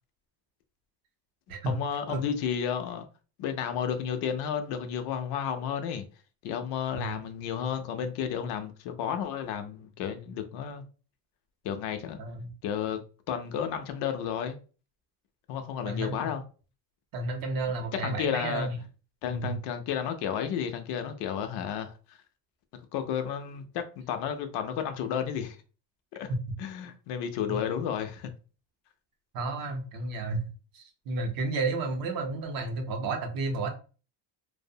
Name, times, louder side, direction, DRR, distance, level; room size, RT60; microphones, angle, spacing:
voice 1, 1.6-3.1 3.4-6.0 6.4-10.8 11.6-12.2 12.6-14.6 15.5-16.4 18.0-18.7 19.2-22.2 22.9-25.6 26.1-26.3 26.6-28.3, left 8 dB, 65° left, 0.5 m, -32 dB
voice 2, 12.2-12.5 15.8-16.3 17.1-18.8 19.3-19.6 27.5-27.6 29.3-30.4 30.7-33.7, right 3 dB, 50° right, 0.6 m, -32 dB
2.6 x 2.0 x 2.6 m
cardioid pair, 170°, 44 cm